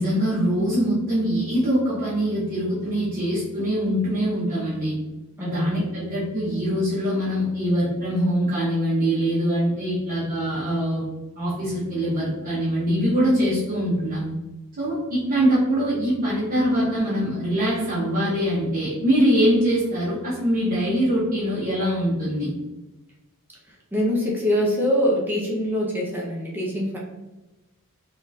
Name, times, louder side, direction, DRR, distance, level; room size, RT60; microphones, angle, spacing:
voice 1, 0.0-4.9 5.4-11.1 11.4-14.3 14.8-22.5, equal, 40° right, -9 dB, 0.8 m, -23 dB
voice 2, 5.4-5.9 23.9-27.0, equal, 10° right, -3 dB, 0.6 m, -24 dB
3.5 x 2.3 x 2.6 m, 1.1 s
head